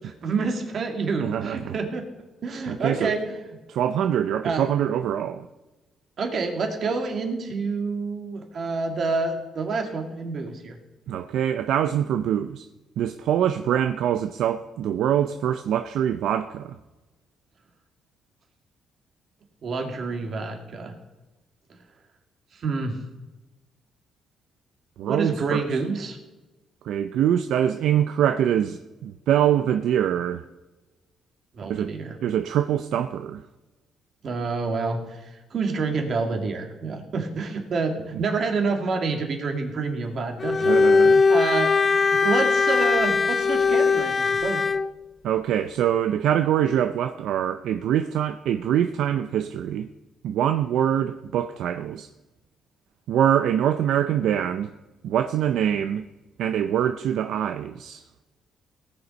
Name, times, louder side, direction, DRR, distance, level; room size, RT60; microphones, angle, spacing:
voice 1, 0.0-2.1 2.4-3.4 4.4-4.7 6.2-10.8 19.6-21.0 22.5-23.0 25.1-26.2 31.5-32.2 34.2-40.8 41.3-44.7, right 4 dB, 55° right, 2.3 m, -28 dB
voice 2, 1.2-1.8 2.7-3.1 3.7-5.5 11.1-12.6 13.0-16.8 25.0-25.7 26.8-30.4 31.7-31.9 32.2-33.4 40.6-41.2 45.2-49.9 50.2-52.1 53.1-54.7 55.0-56.0 56.4-58.0, right 10 dB, 80° right, 0.5 m, -24 dB
Bowed string instrument, 40.4-44.9, left 4 dB, 40° left, 0.5 m, -20 dB
18.5 x 7.1 x 5.3 m
cardioid pair, 90°, 0 cm